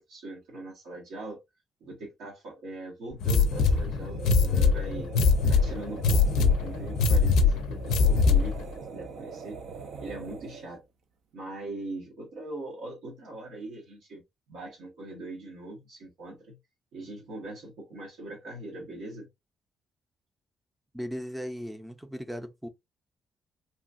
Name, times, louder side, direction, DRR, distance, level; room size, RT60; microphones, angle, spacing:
voice 1, 0.1-1.4 1.8-5.1 5.5-8.6 8.9-9.6 10.0-10.8 11.3-14.2 14.5-16.6 16.9-19.3, right 2 dB, 85° right, 1.1 m, -41 dB
sound 1, 3.2-8.6, left 4 dB, 90° left, 0.4 m, -23 dB
sound 2, 3.4-10.8, right 5 dB, 70° right, 0.5 m, -42 dB
voice 2, 20.9-22.7, equal, 5° right, 0.5 m, -37 dB
2.9 x 2.4 x 2.5 m
cardioid pair, 80°, 0 cm